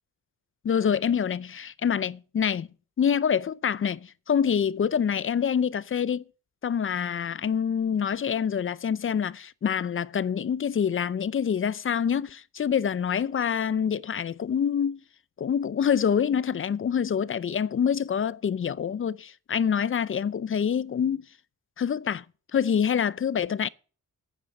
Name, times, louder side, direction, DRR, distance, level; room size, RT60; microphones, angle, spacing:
voice 1, 0.6-2.7 3.0-6.2 6.6-15.0 15.4-21.3 21.8-22.2 22.5-23.7, left 7 dB, 40° left, 0.5 m, -26 dB
9.4 x 9.1 x 6.2 m
wide cardioid pair, 115°, 34 cm